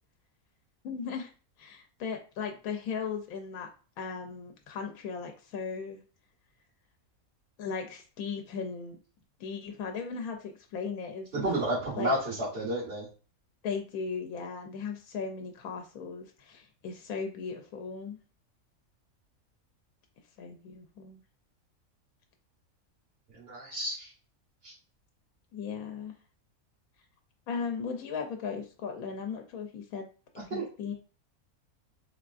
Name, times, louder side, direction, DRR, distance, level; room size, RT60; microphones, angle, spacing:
voice 1, 0.8-1.3 1.6-3.7 4.0-6.0 7.6-9.0 9.4-11.4 12.0-12.1 13.6-18.2 20.4-21.2 25.5-26.1 27.5-30.1 30.3-30.9, left 5 dB, 85° left, 4 dB, 1.1 m, -37 dB
voice 2, 11.3-13.1 23.3-24.1 24.6-24.7 30.5-30.7, right 1 dB, 45° right, -9 dB, 1.7 m, -31 dB
3.6 x 3.4 x 2.4 m, 0.37 s
omnidirectional pair, 1.5 m